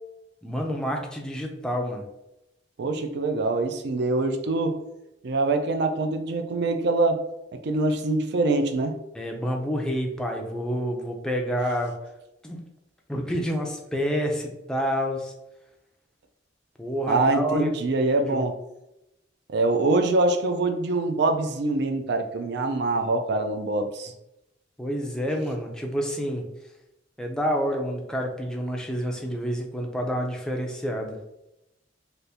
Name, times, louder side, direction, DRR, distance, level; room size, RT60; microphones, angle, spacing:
voice 1, 0.4-2.0 9.1-11.9 12.4-12.6 13.1-15.3 16.8-17.7 18.3-18.4 24.8-26.4 27.2-31.2, equal, 5° left, 1 dB, 0.4 m, -28 dB
voice 2, 2.8-4.8 5.2-7.2 7.6-9.0 17.1-18.5 19.5-24.1, right 2 dB, 60° right, 6 dB, 0.4 m, -24 dB
3.4 x 2.5 x 2.7 m, 0.90 s
head